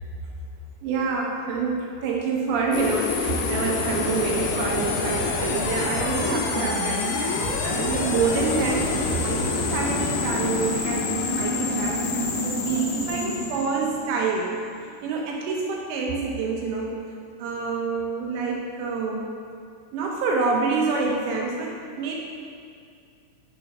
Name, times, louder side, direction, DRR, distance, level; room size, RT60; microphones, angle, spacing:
voice 1, 0.8-11.0 11.4-12.0 12.4-14.6 15.0-17.0 17.4-19.3 19.9-22.2, right 4 dB, 80° right, -1 dB, 2.6 m, -27 dB
sound 1, 2.7-14.7, left 3 dB, 75° left, 3.1 m, -27 dB
10.5 x 6.2 x 5.4 m, 2.4 s
omnidirectional pair, 5.8 m